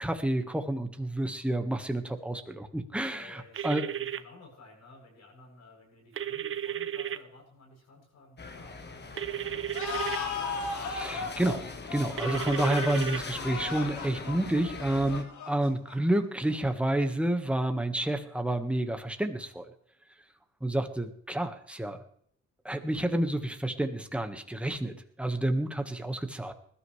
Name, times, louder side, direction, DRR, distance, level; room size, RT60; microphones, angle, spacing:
voice 1, 0.0-3.9 10.9-11.6 11.9-19.6 20.6-22.0 22.6-26.5, right 1 dB, 5° right, 6 dB, 1.5 m, -29 dB
voice 2, 3.0-3.7 4.0-10.1, left 2 dB, 65° left, 0 dB, 7.8 m, -54 dB
sound 1, 3.5-4.2 6.2-7.2 9.2-10.2 12.2-13.2, right 10 dB, 45° right, 0.8 m, -33 dB
sound 2, 8.4-15.2, left 4 dB, 35° left, 1.5 m, -42 dB
sound 3, 9.7-16.2, left 5 dB, 80° left, 2.4 m, -36 dB
20.5 x 13.0 x 3.3 m, 0.64 s
cardioid pair, 100°, 29 cm